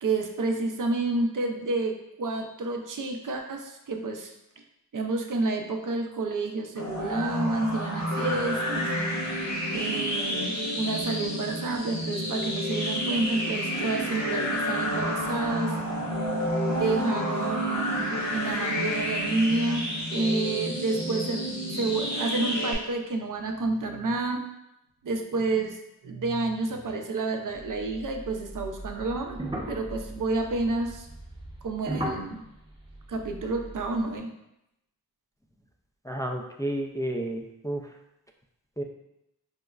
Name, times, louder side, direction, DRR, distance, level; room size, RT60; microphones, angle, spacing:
voice 1, 0.0-4.3 4.9-8.9 9.7-15.7 16.7-24.4 25.0-25.8 26.0-29.4 29.7-31.1 31.6-32.4 33.1-34.3, right 3 dB, 55° right, 4 dB, 0.5 m, -29 dB
sound 1, 6.8-22.7, equal, 50° left, 0.9 m, -29 dB
sound 2, 27.5-34.1, right 1 dB, 15° right, 0.7 m, -38 dB
voice 2, 36.1-37.8 38.8-38.9, right 1 dB, 10° left, 1 dB, 0.3 m, -31 dB
4.9 x 2.1 x 2.3 m, 0.84 s
cardioid pair, 45°, 38 cm